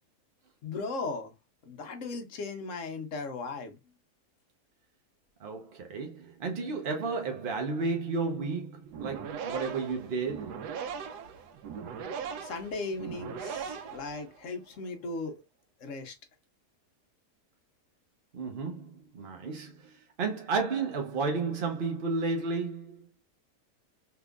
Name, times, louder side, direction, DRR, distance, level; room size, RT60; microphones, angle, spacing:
voice 1, 0.6-1.3 1.6-3.8 12.4-15.3 15.8-16.1, left 3 dB, 60° left, 1.0 m, -37 dB
voice 2, 5.4-10.7 18.3-23.0, right 4 dB, 55° right, 0.6 m, -32 dB
sound 1, 8.8-14.6, right 6 dB, 80° right, 1.2 m, -39 dB
3.6 x 2.9 x 2.3 m
omnidirectional pair, 1.7 m